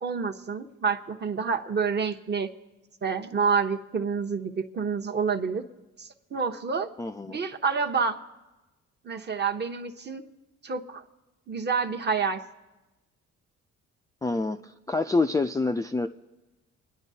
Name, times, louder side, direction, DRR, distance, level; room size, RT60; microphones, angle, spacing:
voice 1, 0.0-2.5 3.0-5.6 6.0-6.9 7.3-8.2 9.0-10.2 10.6-11.0 11.5-12.4, right 5 dB, 35° right, 5 dB, 0.9 m, -28 dB
voice 2, 7.0-7.4 14.2-16.1, left 3 dB, 10° left, 5 dB, 0.3 m, -27 dB
28.5 x 10.0 x 2.8 m, 1.1 s
cardioid pair, 90°, 30 cm